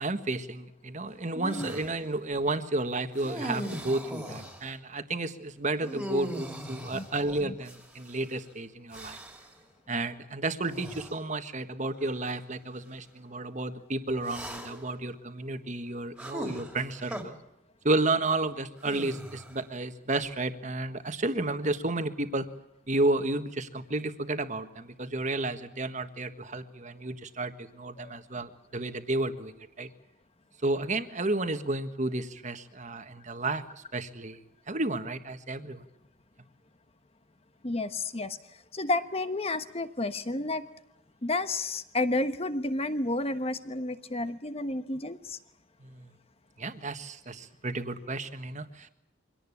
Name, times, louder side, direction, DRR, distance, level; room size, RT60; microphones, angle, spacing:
voice 1, 0.0-9.2 9.9-17.3 17.8-22.5 22.9-29.5 29.8-29.9 30.6-33.6 33.9-34.4 34.7-35.8 45.8-46.1 46.6-48.9, right 2 dB, 40° right, 9 dB, 1.6 m, -32 dB
voice 2, 1.3-1.7 6.9-7.1 7.4-7.5 28.0-28.1 37.6-40.7 41.2-45.4, left 2 dB, 30° left, 11 dB, 1.2 m, -31 dB
sound 1, 1.5-1.9 3.2-4.7 5.8-8.2 8.9-9.5 10.6-11.2 12.0-12.1 14.2-14.9 16.2-17.2 18.8-19.6, equal, 5° right, 3.0 m, -39 dB
24.5 x 18.0 x 8.6 m, 0.88 s
head